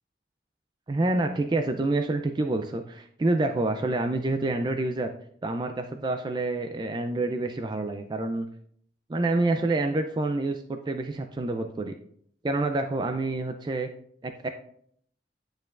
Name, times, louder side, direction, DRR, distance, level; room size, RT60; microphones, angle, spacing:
voice 1, 0.9-5.1 5.4-8.5 9.1-11.9 12.4-13.9 14.2-14.5, right 2 dB, 25° right, 6 dB, 0.3 m, -27 dB
10.0 x 4.5 x 2.4 m, 0.65 s
head